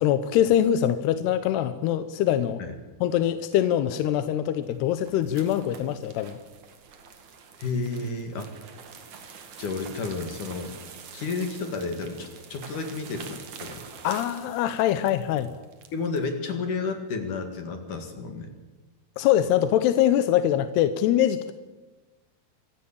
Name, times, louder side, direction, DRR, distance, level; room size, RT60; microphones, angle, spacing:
voice 1, 0.0-2.6 3.0-6.4 14.0-15.5 19.2-21.5, left 11 dB, 80° left, 11 dB, 2.8 m, -23 dB
sound 1, 4.5-16.2, right 6 dB, 50° right, 2.9 m, -45 dB
voice 2, 7.6-8.5 9.6-10.7 11.1-13.8 15.9-18.5, left 4 dB, 55° left, 6 dB, 3.1 m, -31 dB
25.5 x 15.0 x 8.6 m, 1.2 s
omnidirectional pair, 4.9 m